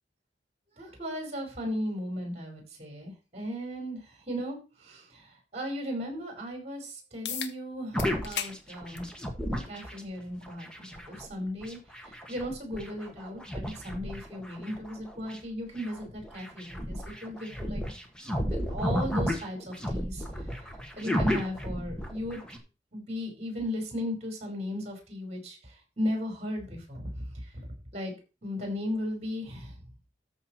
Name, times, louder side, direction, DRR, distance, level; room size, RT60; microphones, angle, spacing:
voice 1, 0.8-9.1 9.5-17.8 18.4-20.6 21.0-22.4 22.9-27.6 27.9-28.1 28.4-29.8, equal, 40° right, 2 dB, 4.9 m, -36 dB
sound 1, 7.2-7.5 8.0-8.6 9.0-9.1 10.2-10.3 15.2-15.3, left 8 dB, 80° left, 1.1 m, -35 dB
sound 2, 7.9-10.0 10.5-15.4 15.8-22.6, equal, 5° left, 1.6 m, -33 dB
13.5 x 6.0 x 4.5 m, 0.32 s
head